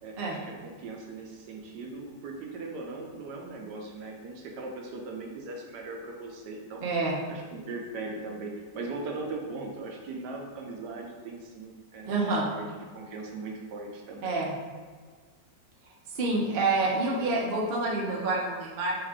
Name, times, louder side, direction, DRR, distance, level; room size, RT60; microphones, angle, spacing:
voice 1, 0.0-6.8 7.3-12.2 12.5-12.7 12.9-14.3, right 3 dB, 75° right, 0 dB, 1.3 m, -39 dB
voice 2, 6.8-7.2 12.1-12.5 14.2-14.5 16.1-18.9, right 3 dB, 45° right, -3 dB, 0.7 m, -27 dB
4.0 x 3.2 x 3.5 m, 1.5 s
omnidirectional pair, 1.8 m